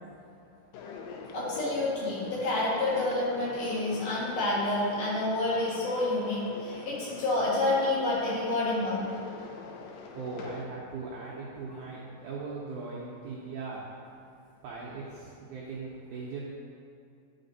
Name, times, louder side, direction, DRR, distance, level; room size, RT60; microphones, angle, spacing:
sound 1, 0.7-10.6, left 5 dB, 80° left, 2.1 m, -43 dB
voice 1, 1.3-9.0, left 2 dB, 60° left, -8 dB, 2.8 m, -28 dB
voice 2, 10.1-13.8 14.6-16.4, right 4 dB, 85° right, -5 dB, 1.7 m, -39 dB
9.9 x 4.1 x 4.0 m, 2.5 s
omnidirectional pair, 4.6 m